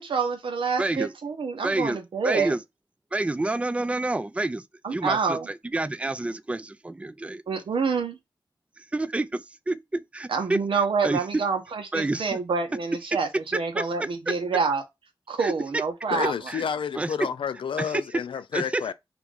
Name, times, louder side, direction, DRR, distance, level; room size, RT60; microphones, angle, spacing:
voice 1, 0.0-2.5 4.8-5.5 7.5-8.2 10.3-14.8 15.3-16.3, right 5 dB, 85° right, 0.9 m, -27 dB
voice 2, 0.8-1.1 1.6-2.0 2.2-2.6 3.1-4.6 4.9-7.4 8.8-10.6 11.0-11.2 11.9-12.4 13.5-14.3 15.4-15.8 16.5-16.6 17.0-17.2 17.8-18.0 18.5-18.8, right 2 dB, 15° right, 0.3 m, -28 dB
voice 3, 16.1-18.9, left 7 dB, 90° left, 0.4 m, -30 dB
3.0 x 2.6 x 3.5 m
cardioid pair, 65°, 9 cm